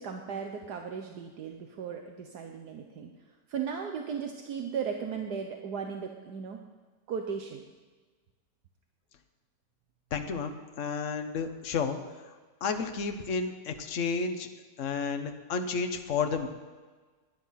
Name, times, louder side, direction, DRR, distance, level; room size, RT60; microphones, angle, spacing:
voice 1, 0.0-3.1 3.5-6.6 7.1-7.6, right 6 dB, 75° right, 3 dB, 1.6 m, -36 dB
voice 2, 10.1-12.0 12.6-14.5 14.8-16.5, left 5 dB, 50° left, 6 dB, 1.4 m, -31 dB
19.0 x 11.0 x 5.8 m, 1.4 s
omnidirectional pair, 1.7 m